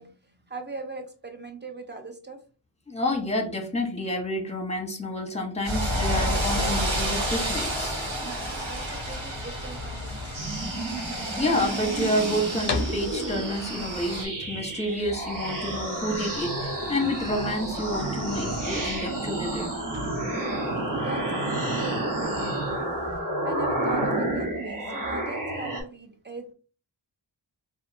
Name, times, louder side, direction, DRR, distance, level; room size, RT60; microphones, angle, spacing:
voice 1, 0.0-2.4 8.2-10.6 21.0-26.5, right 2 dB, 25° right, 4 dB, 0.7 m, -40 dB
voice 2, 2.9-8.0 11.4-19.7, left 1 dB, 15° left, 3 dB, 0.9 m, -29 dB
sound 1, 5.6-14.2, equal, 85° right, 1.0 m, -30 dB
sound 2, 6.2-23.2, left 4 dB, 60° left, 0.5 m, -41 dB
sound 3, 10.3-25.8, right 2 dB, 45° right, 1.1 m, -30 dB
2.7 x 2.6 x 2.6 m, 0.37 s
wide cardioid pair, 45°, 46 cm